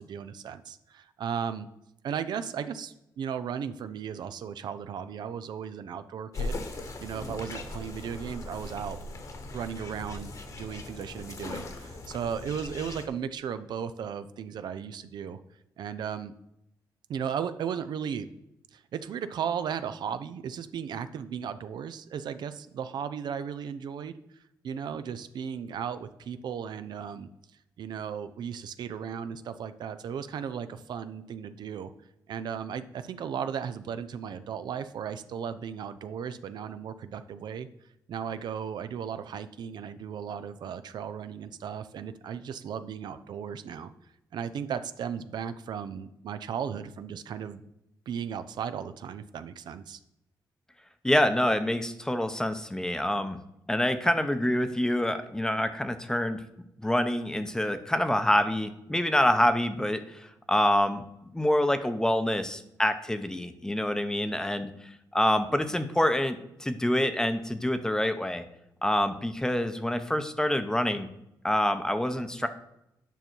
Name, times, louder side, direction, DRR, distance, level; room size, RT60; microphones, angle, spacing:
voice 1, 0.0-1.7 2.0-6.6 7.0-9.0 9.5-15.4 15.8-16.3 17.1-18.3 18.7-24.1 24.6-27.3 27.8-31.9 32.3-37.7 38.1-43.9 44.3-47.6 48.1-50.0, right 7 dB, 70° right, 11 dB, 0.5 m, -36 dB
sound 1, 6.3-13.1, left 2 dB, 45° left, 1.3 m, -39 dB
voice 2, 51.0-53.4 53.7-56.4 56.8-61.0 61.3-64.7 65.1-68.4 68.8-71.1 71.4-72.5, left 1 dB, 10° left, 9 dB, 0.7 m, -26 dB
9.1 x 5.4 x 4.5 m, 0.83 s
cardioid pair, 100°, 8 cm